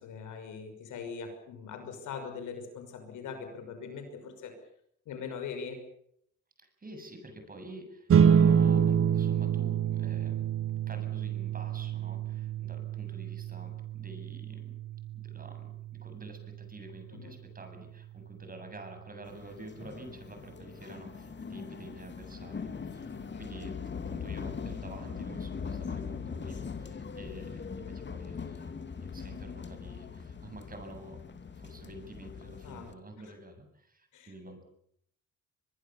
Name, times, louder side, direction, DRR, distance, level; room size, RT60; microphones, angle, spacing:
voice 1, 0.0-4.5 5.1-5.8 17.1-17.3 23.1-23.5 32.6-32.9 34.1-34.6, left 6 dB, 80° left, 7 dB, 6.2 m, -42 dB
voice 2, 6.6-10.4 10.9-14.8 15.1-34.6, right 1 dB, 30° right, 6 dB, 7.7 m, -48 dB
sound 1, 8.1-18.9, right 8 dB, 50° right, 1.2 m, -28 dB
sound 2, 19.3-32.9, left 6 dB, 35° left, 2.5 m, -41 dB
23.5 x 23.0 x 7.2 m, 0.72 s
cardioid pair, 90°, 30 cm